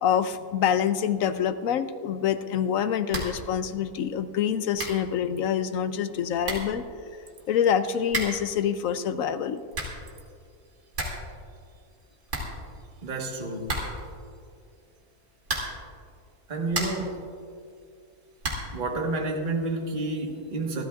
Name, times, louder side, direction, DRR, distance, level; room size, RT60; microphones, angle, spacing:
voice 1, 0.0-6.8 7.5-9.6, left 8 dB, 70° left, 11 dB, 0.9 m, -26 dB
sound 1, 3.1-3.5 3.7-3.8 4.4-4.5 4.8-5.1 6.0-6.1 6.4-6.8 8.1-8.5 9.5-10.1 10.5-10.6 10.7-11.3 11.6-11.7 11.9-12.0 12.3-13.1 13.6-14.2 15.4-15.9 16.4-17.2 18.4-18.8, right 2 dB, 60° right, 3.0 m, -33 dB
voice 2, 13.0-13.7 16.5-17.2 18.7-20.8, right 2 dB, 30° right, 1 dB, 1.5 m, -30 dB
27.0 x 13.0 x 2.4 m, 2.3 s
omnidirectional pair, 1.6 m